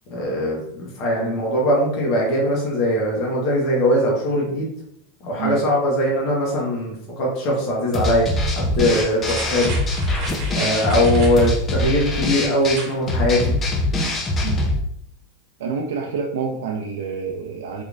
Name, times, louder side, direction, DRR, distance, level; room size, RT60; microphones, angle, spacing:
voice 1, 0.1-4.7 5.2-9.7 10.5-13.6, equal, 45° left, -3 dB, 1.2 m, -21 dB
sound 1, 7.9-14.8, left 1 dB, 25° left, 0.6 m, -23 dB
sound 2, 9.2-11.6 12.6-13.0 13.4-13.5, right 3 dB, 45° right, 1.1 m, -35 dB
voice 2, 15.6-17.8, right 5 dB, 80° right, 0 dB, 0.5 m, -28 dB
3.6 x 3.1 x 2.5 m, 0.71 s
supercardioid pair, 140°, 0 cm